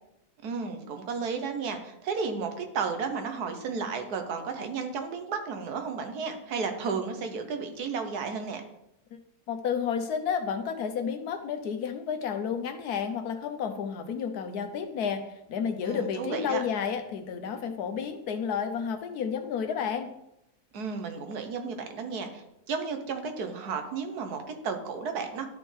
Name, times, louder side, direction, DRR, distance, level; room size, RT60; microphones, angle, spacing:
voice 1, 0.4-8.6 15.8-16.6 20.7-25.5, right 5 dB, 85° right, 6 dB, 1.5 m, -33 dB
voice 2, 9.5-15.2 15.5-20.1, left 7 dB, 80° left, 6 dB, 1.3 m, -31 dB
12.0 x 4.4 x 3.3 m, 0.82 s
omnidirectional pair, 1.6 m